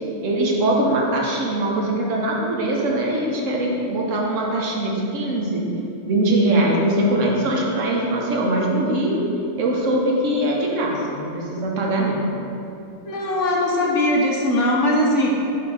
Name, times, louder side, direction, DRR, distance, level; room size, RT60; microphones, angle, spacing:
voice 1, 0.2-5.6 6.1-9.2 9.6-12.2, right 1 dB, 65° right, -2 dB, 1.1 m, -22 dB
voice 2, 13.1-15.6, left 1 dB, 65° left, -2 dB, 1.1 m, -20 dB
6.5 x 2.8 x 5.4 m, 2.8 s
omnidirectional pair, 1.4 m